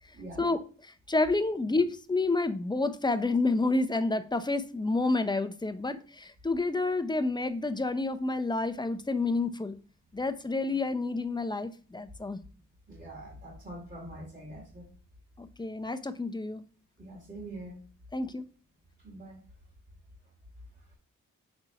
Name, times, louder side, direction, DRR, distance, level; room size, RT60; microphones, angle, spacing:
voice 1, 0.4-9.8 10.1-12.4 15.4-16.6 18.1-18.5, left 3 dB, 15° left, 11 dB, 0.6 m, -29 dB
voice 2, 12.9-14.9 17.0-17.8 19.0-19.4, right 1 dB, 25° right, -6 dB, 2.5 m, -44 dB
4.4 x 4.0 x 5.7 m, 0.38 s
cardioid pair, 80°, 32 cm